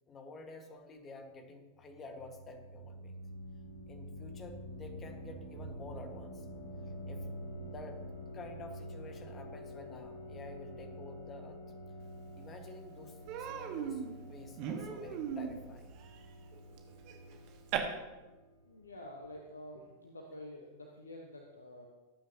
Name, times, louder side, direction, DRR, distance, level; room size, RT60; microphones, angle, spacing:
voice 1, 0.1-3.2 3.9-6.4 7.1-7.3 7.7-8.0 8.3-11.6 12.3-15.9, left 2 dB, 25° left, 5 dB, 1.7 m, -50 dB
sound 1, 1.8-18.5, equal, 75° right, 3.6 m, -47 dB
Human voice, 12.3-12.4 12.7-12.9 13.3-17.8, right 9 dB, 45° right, 1.5 m, -40 dB
voice 2, 18.6-21.9, left 1 dB, 75° left, 1 dB, 1.2 m, -49 dB
18.5 x 9.0 x 2.9 m, 1.1 s
figure-of-eight pair, 90°, 0 cm